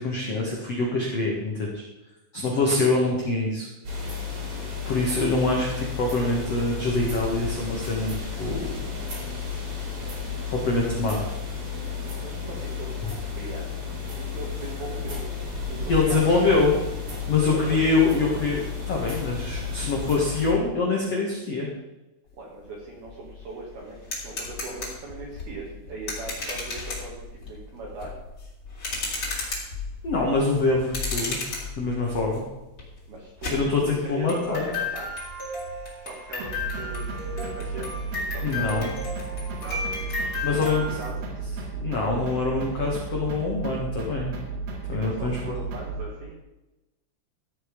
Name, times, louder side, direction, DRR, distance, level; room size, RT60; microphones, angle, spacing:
voice 1, 0.0-1.8 2.3-3.7 4.8-8.7 10.5-11.2 15.9-16.7 17.3-18.6 18.9-21.7 30.0-31.4 31.8-32.4 33.5-34.7 38.4-38.9 40.4-40.8 41.8-44.3 44.9-45.4, left 3 dB, 85° left, -2 dB, 1.4 m, -24 dB
sound 1, 3.8-20.5, left 5 dB, 35° right, 3.1 m, -33 dB
voice 2, 12.2-13.8 14.2-15.2 15.7-16.7 17.5-18.4 22.3-28.1 33.1-35.3 36.0-37.9 38.2-38.9 39.5-41.1 45.0-46.3, right 2 dB, 60° right, -3 dB, 3.0 m, -39 dB
sound 2, 22.7-22.8 23.1-41.1, left 3 dB, 30° left, 3.4 m, -34 dB
sound 3, 36.4-46.1, right 3 dB, 80° right, 4.4 m, -33 dB
13.5 x 8.3 x 5.3 m, 1.0 s
omnidirectional pair, 6.0 m